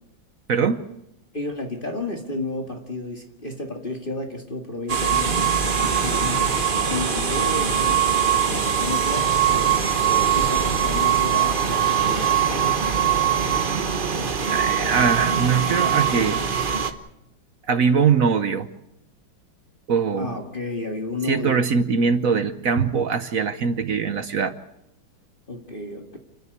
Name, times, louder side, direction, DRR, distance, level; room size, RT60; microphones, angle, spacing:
voice 1, 0.5-0.8 13.7-13.8 14.5-16.4 17.7-18.7 19.9-20.3 21.2-24.5, right 6 dB, 55° right, 11 dB, 1.1 m, -22 dB
voice 2, 1.3-5.4 5.7-6.5 6.9-8.0 8.3-12.8 20.2-21.6 25.5-26.2, left 2 dB, 25° left, 2 dB, 2.0 m, -32 dB
sound 1, 4.9-16.9, right 8 dB, 30° right, 1.1 m, -22 dB
29.5 x 10.5 x 9.5 m, 0.83 s
omnidirectional pair, 2.2 m